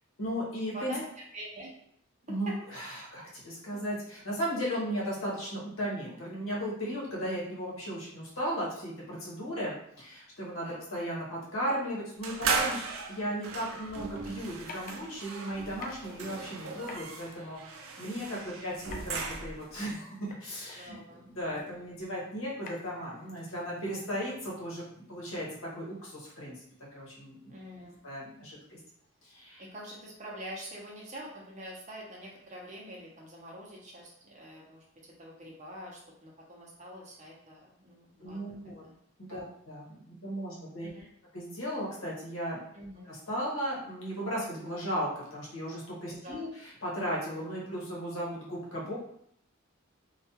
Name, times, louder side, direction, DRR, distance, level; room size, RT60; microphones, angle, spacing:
voice 1, 0.2-0.9 2.3-12.8 13.1-25.5 25.7-26.6 26.9-27.5 28.0-28.8 29.2-29.6 38.2-38.8 39.2-40.9 41.3-42.6 43.1-49.0, equal, 75° left, -4 dB, 0.9 m, -36 dB
voice 2, 0.7-1.7 2.5-2.6 3.7-3.8 4.9-5.0 10.6-10.8 18.5-18.8 20.7-21.9 27.5-28.0 29.6-38.9 39.3-39.4 40.8-41.1 42.7-43.1 46.1-46.5, equal, 35° right, -3 dB, 0.6 m, -45 dB
sound 1, 12.2-19.8, right 4 dB, 75° right, 0.4 m, -36 dB
sound 2, 14.6-25.6, left 3 dB, 40° left, 0.3 m, -52 dB
2.3 x 2.2 x 2.8 m, 0.69 s
head